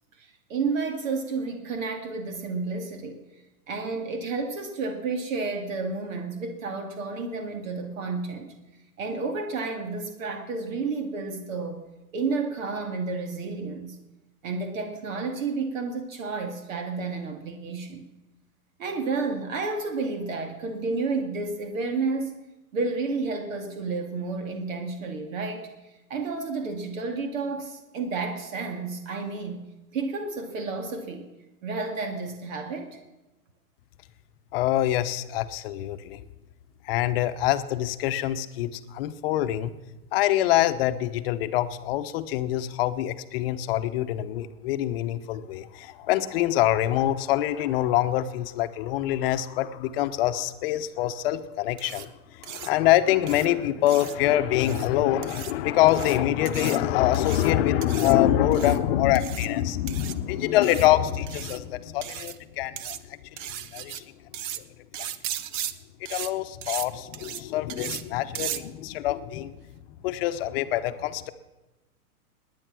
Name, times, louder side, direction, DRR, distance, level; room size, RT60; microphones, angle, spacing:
voice 1, 0.2-3.2 3.7-8.5 9.0-11.8 12.1-14.0 14.4-18.1 18.8-22.3 22.7-29.6 29.9-31.3 31.6-33.0, right 4 dB, 60° right, 5 dB, 2.3 m, -31 dB
voice 2, 34.5-36.2 36.8-39.7 40.1-64.0 65.0-65.1 66.1-69.6 70.0-71.3, left 13 dB, 40° left, 11 dB, 1.0 m, -25 dB
sound 1, 51.8-52.0 52.4-52.7 53.3-53.5 53.9-54.1 54.6-54.9 55.2-55.5 55.9-56.2 56.4-56.8 57.1-57.5 57.8-58.1 58.5-58.8 59.1-59.5 59.9-60.1 60.6-60.9 61.3-61.6 62.0-62.4 62.8-63.0 63.4-64.0 64.3-64.6 64.9-65.7 66.0-66.3 66.6-66.9 67.1-67.4 67.7-68.0 68.3-68.6, right 11 dB, 30° right, 0.8 m, -36 dB
20.0 x 9.6 x 6.3 m, 1.0 s
hypercardioid pair, 135°, 46 cm